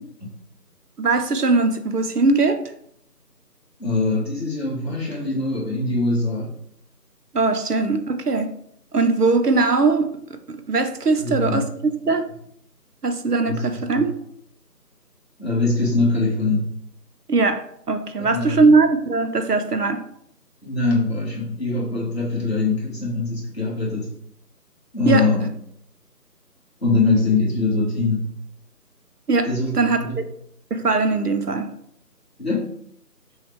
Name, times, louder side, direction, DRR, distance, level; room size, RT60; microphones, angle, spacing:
voice 1, 1.0-2.6 7.3-8.5 8.9-10.1 10.5-11.6 12.1-12.2 13.0-14.1 17.3-17.6 17.9-20.0 25.1-25.2 29.3-29.5 29.7-30.2 30.7-31.7, right 3 dB, 70° right, 7 dB, 0.7 m, -20 dB
voice 2, 3.8-6.5 11.2-11.7 12.0-12.1 13.5-13.6 13.9-14.0 15.4-16.7 18.2-18.6 20.6-24.1 24.9-25.5 26.8-28.3 29.5-30.1 32.4-32.7, left 3 dB, 40° left, -6 dB, 1.7 m, -23 dB
6.3 x 2.3 x 3.3 m, 0.69 s
figure-of-eight pair, 170°, 48 cm